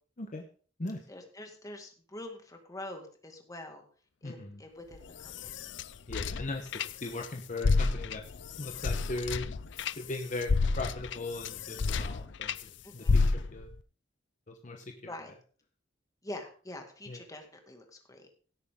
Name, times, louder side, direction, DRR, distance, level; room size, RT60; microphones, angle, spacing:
voice 1, 1.1-3.9 4.2-5.7 11.9-12.2 12.8-13.2 15.1-15.3 16.2-18.3, left 1 dB, 20° left, 4 dB, 2.1 m, -45 dB
voice 2, 4.2-4.6 6.1-8.2 8.6-9.5 9.7-13.2 13.5-13.7 14.5-15.1 17.1-17.2, left 2 dB, 45° left, 3 dB, 1.1 m, -38 dB
sound 1, 4.9-7.3 7.6-12.6 13.1-13.7, left 4 dB, 70° left, 0.5 m, -30 dB
17.0 x 8.4 x 3.7 m, 0.42 s
head